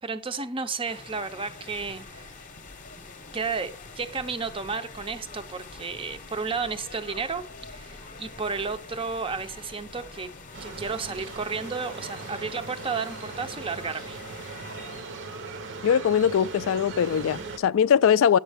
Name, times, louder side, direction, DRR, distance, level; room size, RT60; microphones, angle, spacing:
voice 1, 0.0-2.3 3.3-10.3 10.6-14.2, right 4 dB, 25° right, 0.5 m, -32 dB
sound 1, 0.8-15.0, left 4 dB, 35° left, 0.8 m, -46 dB
sound 2, 1.7-11.6, equal, 75° right, 1.4 m, -52 dB
sound 3, 10.5-17.6, right 3 dB, 55° right, 0.8 m, -39 dB
voice 2, 15.8-18.4, left 8 dB, 60° left, 0.3 m, -21 dB
9.8 x 7.2 x 3.4 m
head